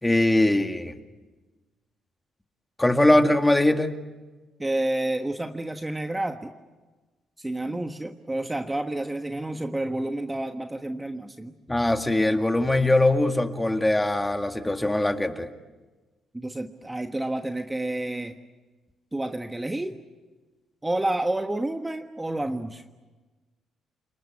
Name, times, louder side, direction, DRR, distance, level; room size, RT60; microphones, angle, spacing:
voice 1, 0.0-0.9 2.8-3.9 11.7-15.5, left 1 dB, 10° left, 6 dB, 2.0 m, -21 dB
voice 2, 4.6-6.5 7.4-11.5 16.3-18.4 19.1-20.0 20.8-22.8, right 1 dB, 10° right, 6 dB, 1.4 m, -29 dB
29.5 x 20.0 x 9.6 m, 1.3 s
cardioid pair, 100°, 0 cm